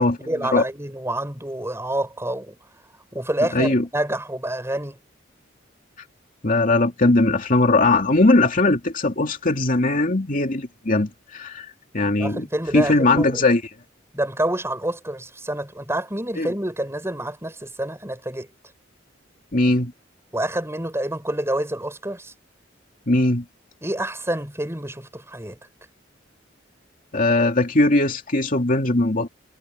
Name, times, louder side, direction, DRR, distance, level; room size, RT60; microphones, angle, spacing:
voice 1, 0.0-2.6 3.1-5.0 12.2-13.4 14.1-18.5 20.3-22.3 23.8-25.6, right 1 dB, 15° right, 6.8 m, -27 dB
voice 2, 3.5-3.8 6.4-11.7 11.9-12.5 12.7-13.6 16.4-16.5 19.5-19.9 23.1-23.4 27.1-29.3, left 2 dB, 45° left, 2.7 m, -19 dB
head